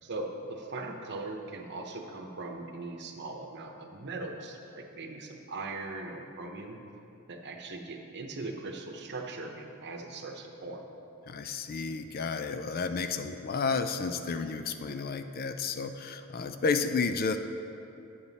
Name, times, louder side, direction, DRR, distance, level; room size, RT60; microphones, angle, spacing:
voice 1, 0.0-6.8 7.3-10.8, right 2 dB, 55° right, 3 dB, 0.9 m, -40 dB
voice 2, 11.3-17.4, left 4 dB, 45° left, 8 dB, 0.4 m, -31 dB
9.0 x 8.5 x 4.1 m, 2.8 s
head